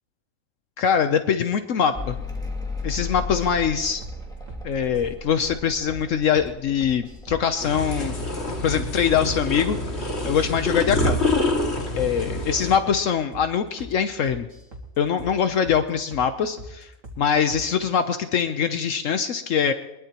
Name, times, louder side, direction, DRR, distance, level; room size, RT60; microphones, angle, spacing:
voice 1, 0.8-2.1 2.8-4.0 4.6-8.1 8.6-9.8 10.2-11.2 11.9-14.5 15.0-16.9 17.2-19.7, left 7 dB, 75° left, 9 dB, 1.1 m, -23 dB
Mechanical fan, 1.9-8.8 9.1-9.9, left 3 dB, 5° left, 2.1 m, -35 dB
sound 1, 3.1-3.7 4.0-4.2 4.5-4.6 4.9-5.1 5.4-5.6 5.9-6.0 6.3-6.5 6.8-7.4 7.7-7.9 8.2-8.4 8.7-8.8 9.1-9.3 9.6-9.8 10.1-10.2 10.5-11.2 11.5-11.6 11.9-12.1 12.4-12.6 12.8-13.0 13.3-13.5 13.8-13.9 14.2-14.9 15.2-15.3 15.6-15.8 16.1-16.3 16.6-16.7 17.0-17.2 17.5-17.7, equal, 75° right, 2.5 m, -40 dB
sound 2, 7.6-12.8, left 2 dB, 55° left, 2.4 m, -26 dB
22.0 x 21.5 x 2.9 m, 0.94 s
omnidirectional pair, 1.4 m